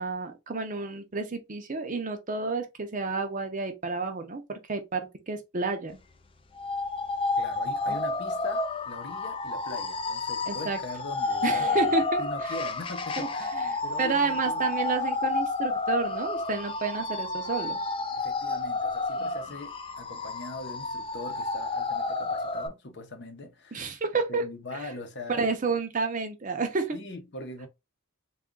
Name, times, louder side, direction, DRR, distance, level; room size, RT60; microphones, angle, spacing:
voice 1, 0.0-6.0 7.9-8.0 10.5-10.8 11.4-12.2 13.2-13.3 13.6-17.8 19.2-19.4 23.7-24.5 25.3-27.0, right 4 dB, 35° right, 0.6 m, -30 dB
sound 1, 6.6-22.7, left 3 dB, 25° left, 0.4 m, -30 dB
voice 2, 7.4-11.9 12.2-14.7 18.1-23.9 24.3-25.4 26.9-27.7, left 2 dB, 50° left, 0.7 m, -41 dB
3.6 x 2.3 x 3.7 m
head